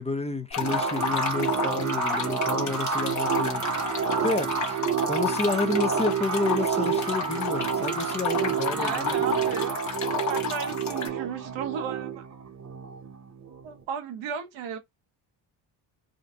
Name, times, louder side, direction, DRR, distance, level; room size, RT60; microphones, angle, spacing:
voice 1, 0.0-4.8 5.1-9.4, left 3 dB, 15° left, 0.6 m, -30 dB
sound 1, 0.5-11.1, left 7 dB, 40° left, 1.0 m, -32 dB
sound 2, 0.6-13.8, right 6 dB, 40° right, 0.9 m, -29 dB
voice 2, 8.7-10.0 10.3-12.2 13.6-14.8, right 7 dB, 85° right, 1.0 m, -34 dB
3.8 x 2.4 x 2.8 m
cardioid pair, 90°, 44 cm